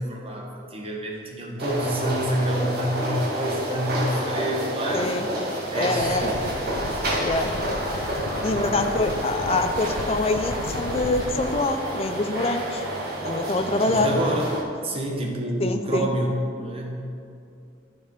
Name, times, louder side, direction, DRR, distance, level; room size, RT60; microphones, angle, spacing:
voice 1, 0.0-5.1 5.7-6.3 6.8-7.3 8.4-9.1 13.8-17.0, right 1 dB, 30° right, 0 dB, 1.2 m, -28 dB
sound 1, 1.6-14.6, right 1 dB, 50° right, 1.6 m, -29 dB
voice 2, 4.9-5.3 5.8-6.3 7.2-7.5 8.4-12.8 13.2-14.1 15.6-16.1, left 2 dB, 30° left, 6 dB, 0.5 m, -25 dB
sound 2, 6.0-11.7, left 2 dB, 85° left, 0.6 m, -35 dB
12.5 x 5.0 x 4.7 m, 2.5 s
head